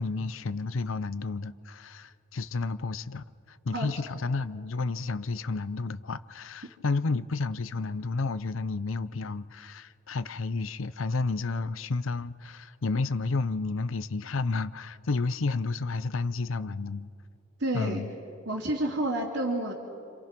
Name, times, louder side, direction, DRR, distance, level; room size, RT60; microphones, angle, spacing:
voice 1, 0.0-17.1 17.7-18.1, left 3 dB, 80° left, 0.7 m, -31 dB
voice 2, 17.6-18.0 18.4-19.7, right 1 dB, 65° right, 2.9 m, -29 dB
29.0 x 27.0 x 6.0 m
head